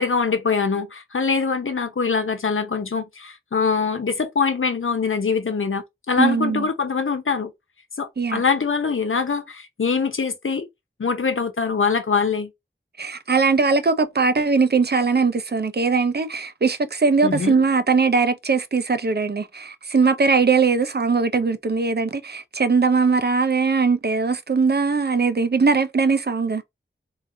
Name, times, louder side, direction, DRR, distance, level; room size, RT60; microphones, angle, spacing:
voice 1, 0.0-7.5 8.0-10.7 11.0-12.5 17.2-17.6, left 5 dB, 80° left, 0.9 m, -23 dB
voice 2, 6.2-6.7 8.2-8.4 13.0-26.6, right 4 dB, 55° right, 0.7 m, -20 dB
3.9 x 3.8 x 2.7 m
wide cardioid pair, 70°, 20 cm